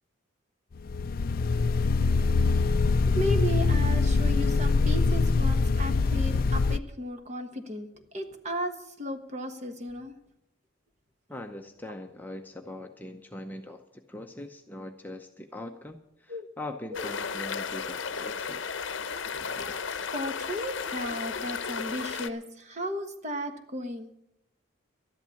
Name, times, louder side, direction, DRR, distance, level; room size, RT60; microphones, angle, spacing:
sound 1, 0.8-6.8, left 3 dB, 45° left, 0.4 m, -24 dB
voice 1, 2.5-10.1 16.3-16.5 16.9-17.1 17.8-18.0 19.3-24.1, equal, 35° right, 7 dB, 1.3 m, -35 dB
voice 2, 11.3-18.6, left 1 dB, 10° left, 4 dB, 0.7 m, -41 dB
sound 2, 16.9-22.3, left 6 dB, 60° left, 0.8 m, -34 dB
13.0 x 11.0 x 7.1 m, 0.82 s
head